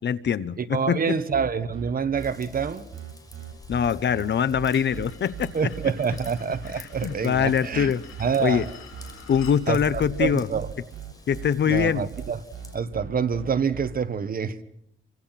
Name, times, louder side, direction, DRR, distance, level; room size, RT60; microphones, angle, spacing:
voice 1, 0.0-1.2 3.7-5.5 6.8-8.0 8.4-8.7 9.3-10.5 11.3-12.1, left 8 dB, 55° left, 0.9 m, -23 dB
voice 2, 0.6-2.9 5.5-7.9 8.2-8.6 9.7-10.7 11.7-12.4 12.7-14.6, right 6 dB, 45° right, 1.3 m, -27 dB
sound 1, 1.3-13.9, right 8 dB, 80° right, 6.6 m, -39 dB
Raindrop / Vehicle horn car horn honking / Trickle dribble, 2.2-12.8, left 1 dB, 15° left, 6.0 m, -47 dB
sound 2, 4.7-9.6, left 7 dB, 75° left, 5.1 m, -48 dB
29.0 x 25.0 x 5.9 m
cardioid pair, 120°, 21 cm